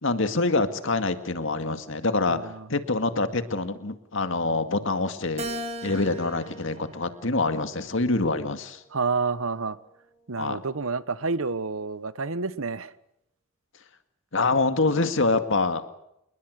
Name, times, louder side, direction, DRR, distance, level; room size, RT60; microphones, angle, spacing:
voice 1, 0.0-2.4 2.7-5.5 5.8-8.8 10.4-10.6 14.3-15.8, left 3 dB, 65° left, 2.1 m, -25 dB
voice 2, 2.3-2.7 8.9-9.8 10.3-12.9, right 4 dB, 85° right, 1.1 m, -29 dB
Keyboard (musical), 5.4-7.9 8.5-9.7, right 1 dB, 35° right, 2.6 m, -39 dB
29.5 x 20.5 x 6.6 m
head